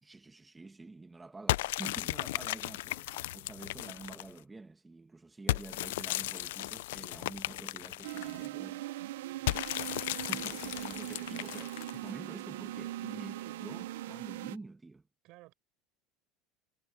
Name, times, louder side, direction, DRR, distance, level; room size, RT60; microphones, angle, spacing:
voice 1, 0.0-8.9 10.3-15.1, right 3 dB, 15° right, 1.6 m, -48 dB
sound 1, 1.5-4.4 5.5-8.5 9.5-12.1, left 17 dB, 85° left, 0.4 m, -35 dB
sound 2, 8.0-14.6, right 15 dB, 90° right, 0.6 m, -40 dB
voice 2, 9.2-9.6 15.2-15.5, right 20 dB, 60° right, 5.1 m, -59 dB
supercardioid pair, 115°, 0 cm